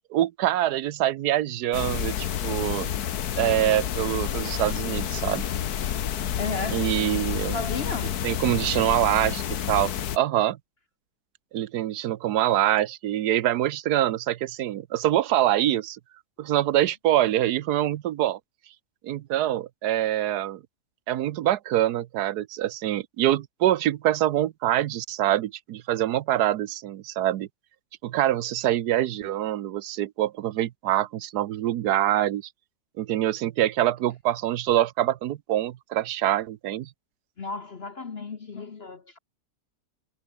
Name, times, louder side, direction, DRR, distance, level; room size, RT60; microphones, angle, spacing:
voice 1, 0.1-2.9 3.4-5.4 6.7-7.6 8.2-10.6 11.5-16.0 16.4-18.4 19.0-20.6 21.1-27.5 28.0-32.4 33.0-36.9, right 13 dB, 80° right, 1.3 m, -25 dB
sound 1, 1.7-10.2, left 9 dB, 75° left, 1.6 m, -29 dB
voice 2, 6.4-6.9 7.5-8.2 37.4-39.2, left 4 dB, 40° left, 1.3 m, -34 dB
omnidirectional pair, 1.7 m